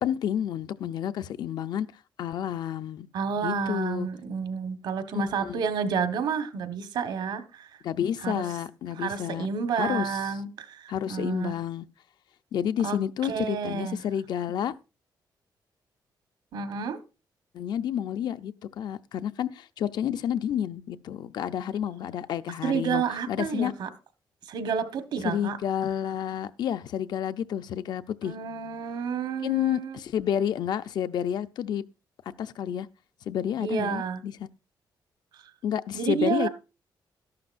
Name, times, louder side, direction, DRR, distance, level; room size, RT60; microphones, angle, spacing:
voice 1, 0.0-1.9 2.2-3.1 3.4-4.1 5.1-5.6 7.8-9.5 9.8-10.2 10.9-11.9 12.5-14.8 17.5-23.7 25.2-28.3 29.4-31.8 32.4-32.9 33.3-34.3 35.6-36.5, left 9 dB, 70° left, 0.5 m, -30 dB
voice 2, 3.1-7.7 8.2-8.4 9.0-11.6 12.8-13.0 13.2-14.0 16.5-17.0 22.6-23.9 24.5-25.6 28.2-30.0 33.6-34.2 35.3-35.4 35.9-36.5, right 6 dB, 80° right, 1.3 m, -30 dB
13.5 x 11.5 x 2.5 m
wide cardioid pair, 180°, 8 cm